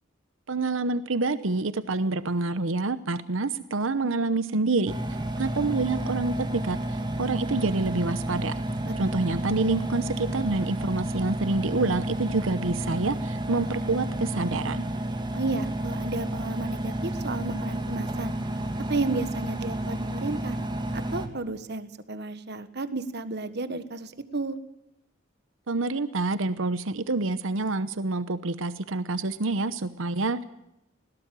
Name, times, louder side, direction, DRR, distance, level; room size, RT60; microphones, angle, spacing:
voice 1, 0.5-4.9 5.4-8.5 9.0-14.9 25.7-30.4, right 3 dB, 80° right, 14 dB, 0.9 m, -27 dB
Engine, 4.9-21.3, right 1 dB, 25° right, 2.4 m, -31 dB
voice 2, 8.9-9.2 15.3-18.3 18.9-20.6 20.9-24.6, right 3 dB, 55° right, 12 dB, 1.4 m, -32 dB
20.5 x 18.0 x 7.6 m, 0.86 s
head